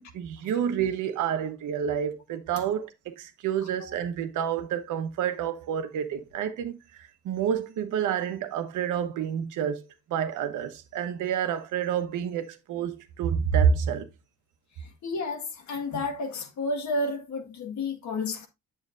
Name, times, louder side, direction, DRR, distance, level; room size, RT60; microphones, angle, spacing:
voice 1, 0.0-9.8 10.1-14.1, right 8 dB, 85° right, 1.1 m, -29 dB
voice 2, 15.0-18.5, left 2 dB, 70° left, 1.8 m, -31 dB
7.7 x 7.5 x 2.5 m
cardioid pair, 90°, 30 cm